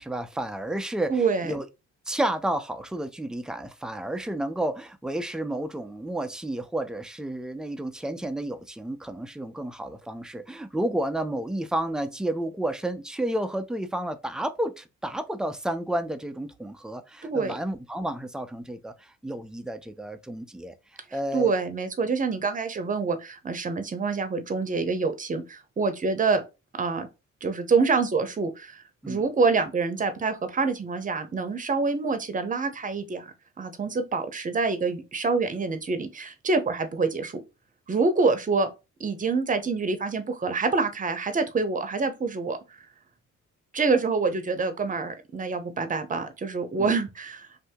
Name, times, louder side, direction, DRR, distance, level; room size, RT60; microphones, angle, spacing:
voice 1, 0.0-1.7 2.1-20.7 21.1-21.5 29.0-29.2 46.8-46.9, right 1 dB, ahead, 0.3 m, -31 dB
voice 2, 1.1-1.5 17.2-17.5 21.3-26.4 26.8-27.1 27.4-37.4 37.9-38.7 39.0-42.6 43.7-47.5, right 4 dB, 25° right, 0.7 m, -26 dB
2.7 x 2.6 x 3.5 m
cardioid pair, 90°, 30 cm